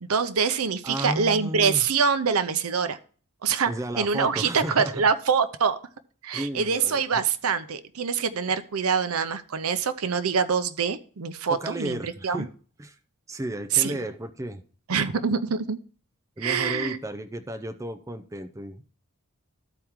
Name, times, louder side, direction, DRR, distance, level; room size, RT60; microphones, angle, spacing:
voice 1, 0.0-3.0 3.4-3.7 4.0-5.8 6.2-12.5 13.7-14.0 14.9-15.8 16.4-17.0, right 6 dB, 85° right, 12 dB, 0.7 m, -25 dB
voice 2, 0.8-1.9 3.7-5.0 6.3-7.2 11.5-12.5 12.8-13.0 13.3-14.6 16.4-18.9, right 1 dB, 15° right, 8 dB, 0.5 m, -33 dB
13.5 x 4.5 x 3.6 m, 0.42 s
head